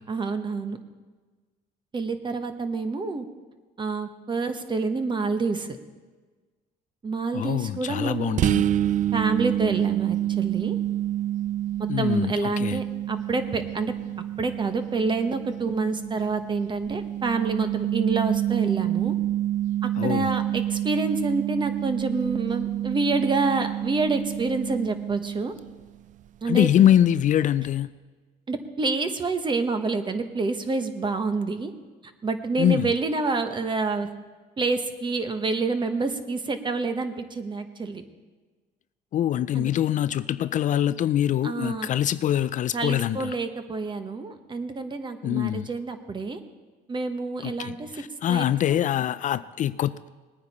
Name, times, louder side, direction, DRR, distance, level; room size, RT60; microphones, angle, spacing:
voice 1, 0.1-0.8 1.9-3.3 3.8-5.8 7.0-8.4 9.1-10.8 11.8-13.9 14.4-19.1 19.8-25.5 26.4-26.7 28.5-31.7 32.2-34.1 34.6-38.0 39.5-39.7 41.4-41.9 42.7-46.4 46.9-48.0 48.3-48.8, right 3 dB, 25° right, 1.1 m, -27 dB
voice 2, 7.3-8.6 11.9-12.8 20.0-20.3 26.5-27.9 32.6-32.9 39.1-43.3 45.2-45.7 47.4-50.1, left 11 dB, 50° left, 0.4 m, -24 dB
sound 1, 8.4-25.9, right 12 dB, 50° right, 0.4 m, -28 dB
20.0 x 9.5 x 4.2 m
cardioid pair, 110°, 17 cm